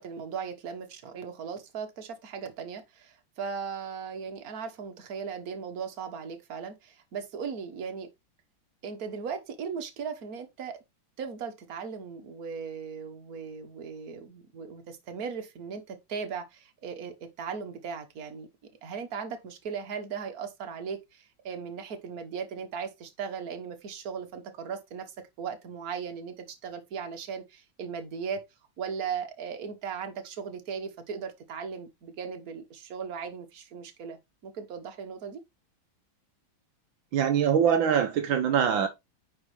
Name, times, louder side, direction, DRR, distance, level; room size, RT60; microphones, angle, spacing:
voice 1, 0.0-8.1 8.8-10.8 11.2-18.5 18.8-28.4 28.8-35.4, right 6 dB, 50° right, 1.7 m, -37 dB
voice 2, 37.1-38.9, right 8 dB, 75° right, 1.6 m, -23 dB
9.6 x 5.0 x 3.3 m
omnidirectional pair, 2.2 m